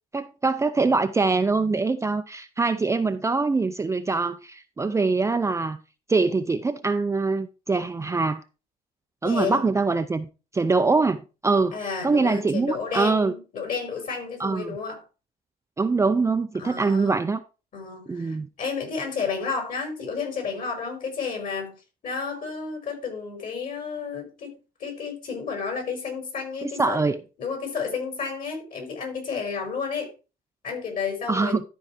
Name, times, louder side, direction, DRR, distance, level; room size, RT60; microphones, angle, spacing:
voice 1, 0.1-5.8 6.1-8.4 9.2-10.3 10.5-11.8 12.0-13.3 14.4-14.8 15.8-17.4 18.1-18.5 26.6-27.2 31.3-31.6, right 3 dB, 15° right, 0.5 m, -23 dB
voice 2, 9.2-9.6 11.7-15.0 16.6-17.2 17.7-21.7 22.0-24.5 24.8-27.0 27.4-30.1 30.6-31.6, left 5 dB, 55° left, 5.0 m, -31 dB
12.5 x 4.7 x 4.3 m
cardioid pair, 110°, 17 cm